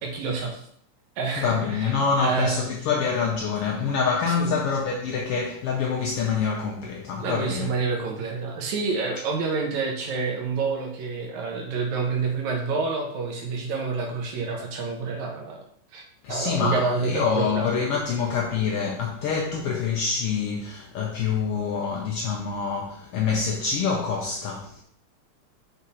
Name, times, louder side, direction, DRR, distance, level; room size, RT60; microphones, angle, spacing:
voice 1, 0.0-0.6 1.2-2.6 4.3-4.5 7.2-15.6 15.9-16.0 16.3-17.7, right 4 dB, 75° right, 2.4 m, -28 dB
voice 2, 1.4-7.7 16.2-24.8, left 5 dB, 90° left, 1.3 m, -26 dB
6.2 x 3.8 x 4.2 m
omnidirectional pair, 3.4 m